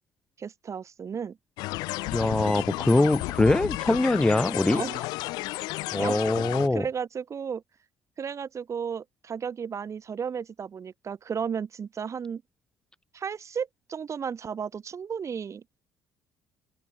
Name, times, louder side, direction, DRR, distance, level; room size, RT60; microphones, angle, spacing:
voice 1, 0.4-1.4 4.7-5.1 6.0-6.3 6.7-7.6 8.2-12.4 13.1-15.8, right 7 dB, 45° right, 2.7 m, -34 dB
sound 1, 1.6-6.7, left 21 dB, 70° left, 0.4 m, -32 dB
voice 2, 2.1-4.8 5.9-6.8, left 2 dB, 10° left, 0.5 m, -23 dB
hypercardioid pair, 60°, 7 cm